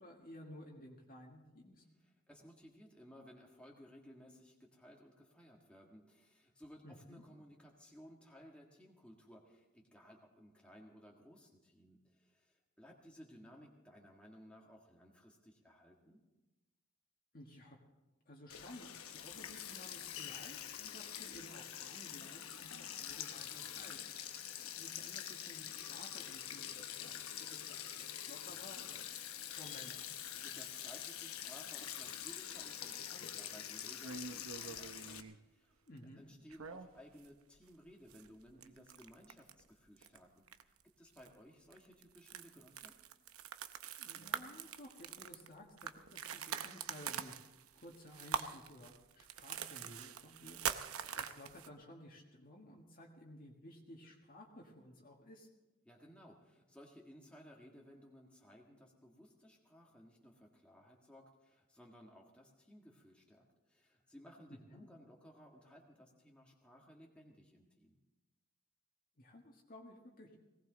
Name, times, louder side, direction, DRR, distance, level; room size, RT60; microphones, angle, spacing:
voice 1, 0.0-1.8 6.8-7.2 17.3-17.8 18.3-24.0 24.3-29.2 29.5-30.1 35.9-36.2 44.0-47.3 47.7-55.5 64.7-64.9 69.2-70.4, left 1 dB, 45° left, -1 dB, 1.7 m, -55 dB
voice 2, 2.0-16.2 30.4-35.7 36.2-43.0 55.8-68.0, equal, 5° left, -1 dB, 1.6 m, -59 dB
Sink (filling or washing), 18.5-35.2, left 10 dB, 85° left, 1.0 m, -46 dB
sound 1, 34.0-35.4 36.5-37.3 37.6-37.7 38.1-39.6 40.0-40.2 40.5-40.8 41.2-41.3 41.7-51.7, right 7 dB, 90° right, 0.8 m, -44 dB
19.0 x 17.5 x 3.9 m, 1.0 s
head